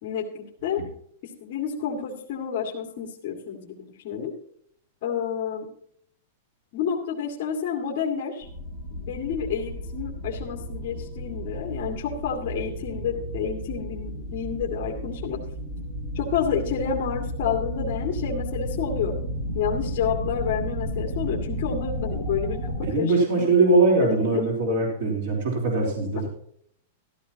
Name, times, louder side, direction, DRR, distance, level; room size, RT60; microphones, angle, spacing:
voice 1, 0.0-0.8 1.4-4.3 5.0-5.7 6.7-8.5 8.9-15.4 16.1-19.2 19.5-23.7 24.0-24.4, left 7 dB, 35° left, -2 dB, 2.2 m, -29 dB
sound 1, 8.4-22.9, equal, 25° right, 6.6 m, -33 dB
voice 2, 22.8-26.3, right 3 dB, 50° right, 0 dB, 3.7 m, -21 dB
14.5 x 13.5 x 2.9 m, 0.66 s
supercardioid pair, 175°, 0 cm